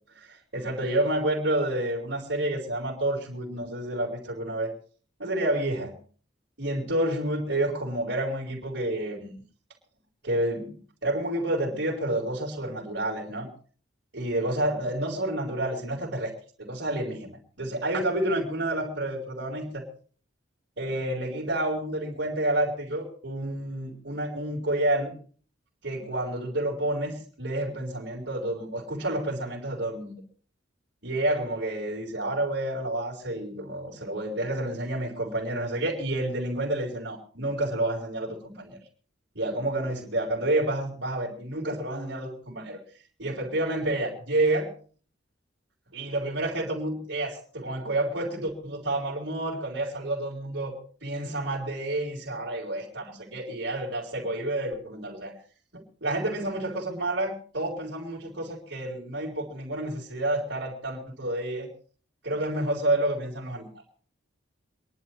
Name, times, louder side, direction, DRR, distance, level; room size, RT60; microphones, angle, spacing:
voice 1, 0.5-4.7 5.2-5.9 6.6-9.3 10.2-10.7 11.0-13.5 14.1-16.3 16.6-19.8 20.8-25.1 25.8-30.2 31.0-38.8 39.3-42.8 43.2-44.7 45.9-50.7 51.0-55.3 55.7-61.7 62.2-63.7, right 1 dB, 70° right, -8 dB, 4.6 m, -29 dB
27.5 x 11.5 x 3.2 m, 0.42 s
head